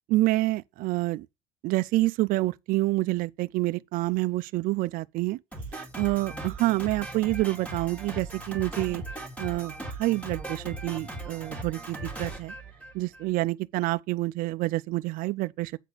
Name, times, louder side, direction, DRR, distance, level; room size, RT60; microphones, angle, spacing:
voice 1, 0.1-1.3 1.6-5.4 5.7-9.0 9.4-12.5 12.9-15.8, right 19 dB, 60° right, 0.4 m, -27 dB
Drum kit, 5.5-13.3, right 2 dB, 10° left, 2.2 m, -38 dB
8.0 x 4.2 x 6.5 m
cardioid pair, 135°, 17 cm